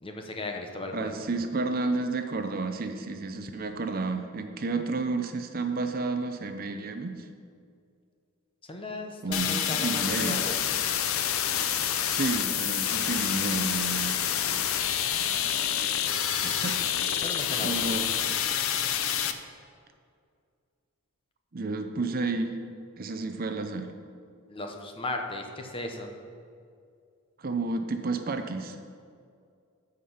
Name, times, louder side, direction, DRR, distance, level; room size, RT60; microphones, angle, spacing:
voice 1, 0.0-1.1 8.7-10.8 16.3-16.6 17.2-17.9 24.5-26.1, left 2 dB, 25° left, 3 dB, 0.9 m, -37 dB
voice 2, 0.9-7.3 9.2-10.4 12.0-14.2 16.4-16.8 17.2-17.3 17.6-18.1 21.5-22.5 23.0-23.9 27.4-28.8, right 3 dB, 45° right, 7 dB, 0.6 m, -31 dB
sound 1, 9.3-19.3, left 9 dB, 75° left, 0.6 m, -28 dB
14.0 x 5.1 x 5.6 m, 2.3 s
head